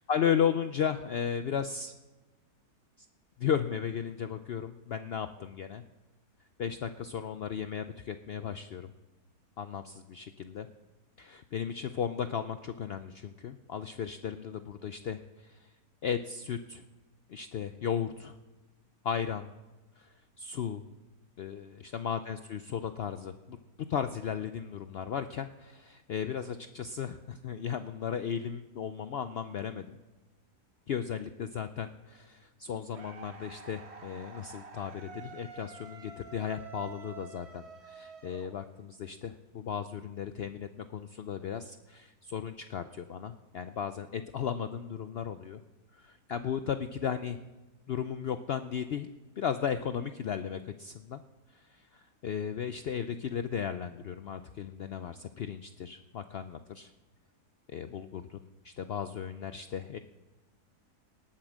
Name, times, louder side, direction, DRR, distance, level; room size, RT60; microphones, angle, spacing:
voice 1, 0.1-1.9 3.4-5.8 6.6-8.9 9.6-10.7 11.2-15.7 16.0-16.8 17.3-18.4 19.0-19.5 20.0-20.8 21.4-23.6 23.9-30.0 30.9-45.6 45.9-47.4 47.9-49.1 49.4-51.2 51.5-56.9 57.7-58.4 58.6-60.0, left 8 dB, 80° left, 10 dB, 0.5 m, -35 dB
sound 1, 32.9-39.0, right 5 dB, 45° right, 1.5 m, -48 dB
18.5 x 8.6 x 6.2 m, 1.1 s
omnidirectional pair, 1.7 m